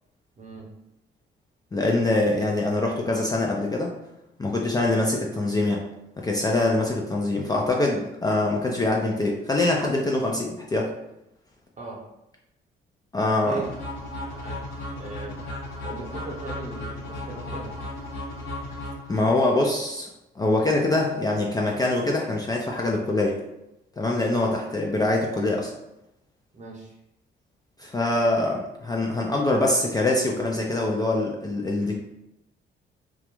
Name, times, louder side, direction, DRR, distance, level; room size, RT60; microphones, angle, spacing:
voice 1, 0.4-0.7 11.8-12.0 13.4-13.6 14.2-14.6 15.0-15.5 15.8-17.7 24.3-24.5 26.5-27.0, right 3 dB, 35° right, -2 dB, 0.8 m, -38 dB
voice 2, 1.7-3.9 4.4-5.8 6.2-10.9 13.1-13.6 19.1-20.1 20.4-23.4 24.0-25.7 27.8-32.0, left 2 dB, 20° left, -1 dB, 0.3 m, -24 dB
sound 1, 13.6-19.6, left 1 dB, 80° left, 0.7 m, -35 dB
2.3 x 2.0 x 2.9 m, 0.88 s
cardioid pair, 90°, 20 cm